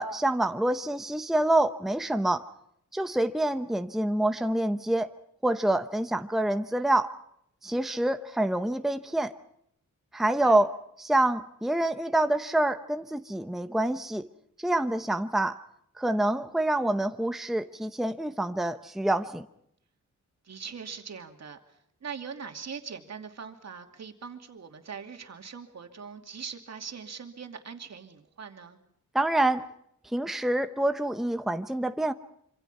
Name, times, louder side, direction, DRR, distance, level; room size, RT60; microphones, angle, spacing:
voice 1, 0.0-2.5 2.9-5.1 5.4-7.1 7.6-9.3 10.1-10.7 11.0-14.2 14.6-15.6 16.0-19.5 29.1-29.6 30.1-32.1, right 1 dB, ahead, 8 dB, 0.9 m, -26 dB
voice 2, 20.4-28.8, right 6 dB, 60° right, 5 dB, 2.7 m, -42 dB
26.0 x 26.0 x 5.7 m, 0.73 s
wide cardioid pair, 115°, 30 cm